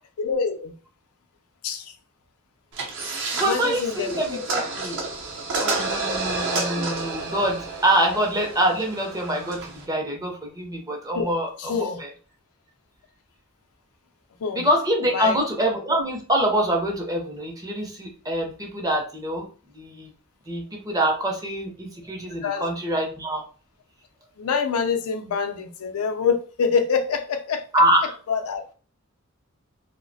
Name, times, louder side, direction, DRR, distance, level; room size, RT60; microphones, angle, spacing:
voice 1, 0.2-0.7 1.6-1.9 3.4-4.4 11.1-11.3 11.6-12.0 14.4-14.7 15.1-15.4 22.4-22.6 24.4-27.6 28.3-28.7, left 5 dB, 90° left, 0.4 m, -26 dB
sound 1, 2.7-9.8, right 3 dB, 60° right, 0.6 m, -30 dB
voice 2, 3.3-4.9 5.6-12.1 14.5-19.5 19.7-20.1 20.5-23.4 27.7-28.2, right 1 dB, 15° right, 0.5 m, -25 dB
2.3 x 2.1 x 2.6 m
head